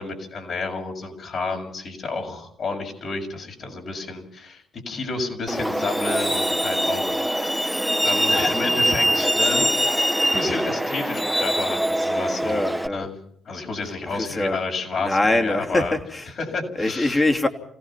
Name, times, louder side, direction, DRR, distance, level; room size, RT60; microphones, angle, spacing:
voice 1, 0.0-9.7 10.3-12.7 12.9-13.1 13.5-15.9 16.4-17.2, left 3 dB, 55° left, 2 dB, 7.1 m, -30 dB
Truck, 5.5-12.9, right 1 dB, ahead, 0.9 m, -23 dB
voice 2, 12.4-13.1 13.8-14.6 15.0-16.4 16.7-17.5, left 2 dB, 20° left, 3 dB, 3.0 m, -24 dB
28.5 x 17.5 x 5.9 m, 0.64 s
cardioid pair, 90°, 0 cm